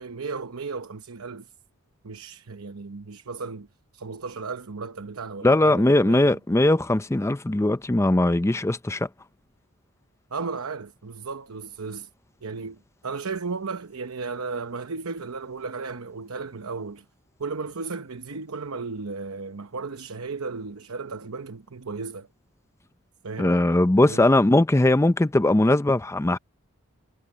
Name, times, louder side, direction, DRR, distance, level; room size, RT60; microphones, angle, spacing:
voice 1, 0.0-1.5 2.0-3.7 3.9-6.4 10.3-12.1 12.4-17.0 17.4-22.3 23.2-23.5 24.0-24.3, right 4 dB, 70° right, 0.9 m, -35 dB
voice 2, 5.4-9.1 23.4-26.4, left 1 dB, 10° left, 0.5 m, -20 dB
head